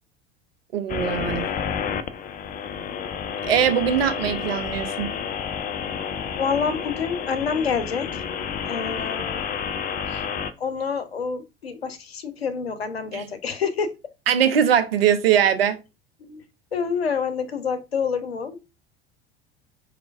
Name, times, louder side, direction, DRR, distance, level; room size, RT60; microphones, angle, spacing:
voice 1, 0.7-1.5 3.5-5.1 13.1-13.2 14.3-15.8, right 9 dB, 75° right, 0.6 m, -21 dB
sound 1, 0.9-10.5, left 7 dB, 30° left, 0.5 m, -30 dB
voice 2, 6.4-8.2 8.7-9.4 10.1-10.2 10.6-13.9 16.2-16.4 16.7-18.6, left 6 dB, 85° left, 0.7 m, -27 dB
4.8 x 3.0 x 2.4 m
figure-of-eight pair, 70°, 30 cm